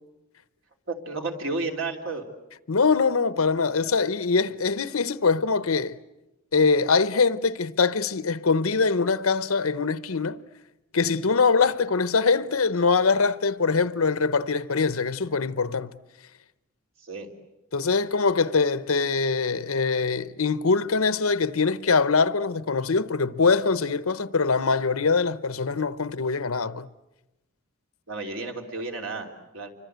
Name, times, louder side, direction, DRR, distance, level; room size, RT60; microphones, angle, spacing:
voice 1, 0.9-2.2 17.0-17.3 28.1-29.7, right 3 dB, 65° right, 3.4 m, -32 dB
voice 2, 2.7-6.0 6.5-10.4 10.9-16.0 17.7-26.9, left 4 dB, 85° left, 0.9 m, -23 dB
29.5 x 25.0 x 8.1 m
head